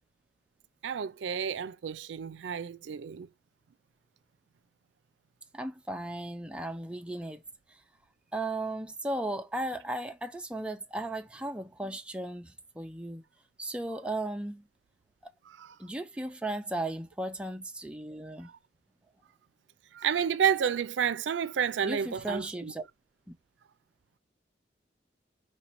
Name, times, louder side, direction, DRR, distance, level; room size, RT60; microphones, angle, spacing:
voice 1, 0.8-3.3 15.5-15.7 19.9-22.7, right 8 dB, 85° right, 0.4 m, -30 dB
voice 2, 5.5-7.4 7.7-7.8 8.3-13.2 13.6-14.7 15.2-15.3 15.8-18.5 21.8-22.9, right 1 dB, 5° right, 0.4 m, -36 dB
5.3 x 3.1 x 3.0 m
head